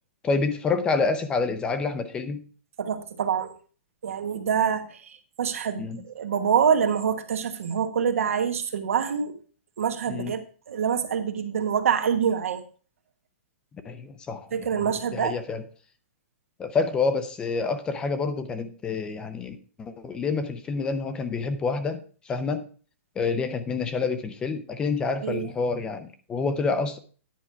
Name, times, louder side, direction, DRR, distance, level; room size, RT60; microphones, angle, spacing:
voice 1, 0.2-2.4 5.8-6.0 10.1-10.3 13.8-15.6 16.6-22.6 23.2-27.0, left 4 dB, 10° left, 0.5 m, -28 dB
voice 2, 2.8-3.5 4.0-4.8 5.4-5.9 6.1-9.4 9.8-10.4 10.7-12.6 14.5-15.4 25.2-25.5, right 7 dB, 75° right, 1.3 m, -25 dB
10.0 x 4.7 x 5.6 m
hypercardioid pair, 165°, 7 cm